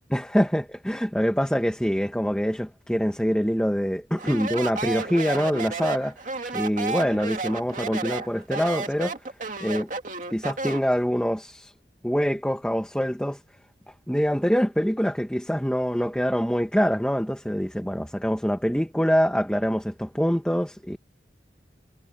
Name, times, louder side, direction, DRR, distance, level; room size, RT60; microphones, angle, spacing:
voice 1, 0.1-9.2 9.6-9.9 10.3-11.7 12.0-13.4 14.1-21.0, equal, 5° left, 1.3 m, -25 dB
Speech, 4.2-10.9, right 3 dB, 45° right, 2.5 m, -32 dB
head